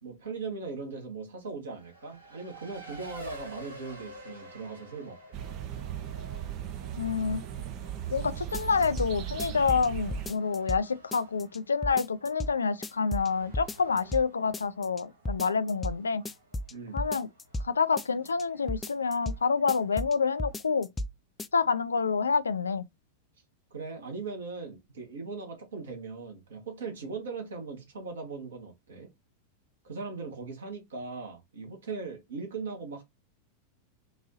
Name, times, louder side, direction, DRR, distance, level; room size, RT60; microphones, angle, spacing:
voice 1, 0.0-5.2 16.7-17.1 23.7-29.1 29.8-33.0, right 4 dB, 65° right, 1.5 m, -39 dB
Race car auto racing, 1.7-20.9, right 1 dB, 90° right, 2.3 m, -51 dB
sound 1, 5.3-10.3, right 11 dB, 40° right, 0.5 m, -37 dB
voice 2, 7.0-7.4 8.1-16.2 16.9-17.3 17.6-20.9 21.5-22.9, left 5 dB, 75° left, 0.4 m, -28 dB
sound 2, 8.5-9.1 9.4-10.8 11.1-11.6 11.8-12.5 12.8-13.3 13.5-14.3 14.5-15.0 15.3-16.0 16.3-17.7 18.0-18.4 18.7-19.4 19.7-20.1 20.4-21.1 21.4-21.5, left 1 dB, 15° left, 0.4 m, -34 dB
3.9 x 2.7 x 3.9 m
figure-of-eight pair, 90°, 0 cm